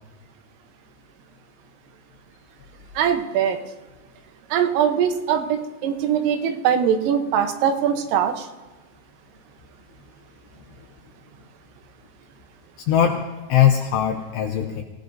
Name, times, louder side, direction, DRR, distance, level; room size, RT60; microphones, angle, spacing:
voice 1, 3.0-3.6 4.5-8.5, right 8 dB, 80° right, 6 dB, 3.6 m, -21 dB
voice 2, 12.9-14.8, left 10 dB, 85° left, 3 dB, 2.5 m, -20 dB
26.5 x 16.5 x 2.7 m, 1.2 s
omnidirectional pair, 5.9 m